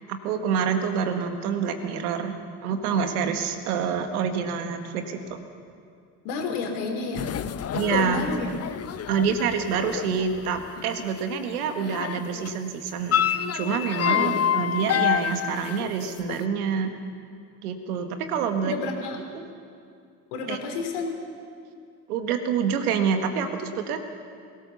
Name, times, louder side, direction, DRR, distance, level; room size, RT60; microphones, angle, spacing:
voice 1, 0.0-5.4 7.7-8.3 9.1-16.9 17.6-18.7 19.3-19.5 20.5-20.6 22.1-24.0, right 6 dB, 80° right, 7 dB, 1.7 m, -27 dB
voice 2, 6.2-7.3 7.9-8.5 14.0-14.5 18.6-19.2 20.3-21.2, left 4 dB, 75° left, 3 dB, 3.5 m, -30 dB
sound 1, 7.2-12.5 12.9-16.4, left 10 dB, 35° left, 0.7 m, -28 dB
21.0 x 18.5 x 7.1 m, 2.4 s
hypercardioid pair, 55°, 44 cm